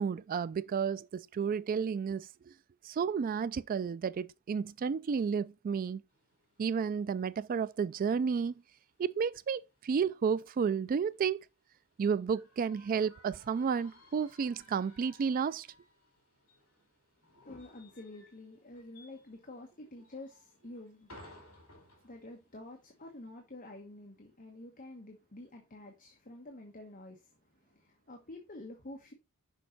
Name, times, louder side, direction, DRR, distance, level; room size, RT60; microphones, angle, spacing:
voice 1, 0.0-2.3 2.8-6.0 6.6-8.5 9.0-11.4 12.0-15.7, right 6 dB, 40° right, 0.3 m, -32 dB
sound 1, 6.1-23.2, left 1 dB, 75° left, 3.9 m, -61 dB
voice 2, 17.4-21.1 22.0-27.3 27.6-29.1, left 2 dB, 40° left, 1.2 m, -49 dB
6.4 x 5.5 x 4.0 m
head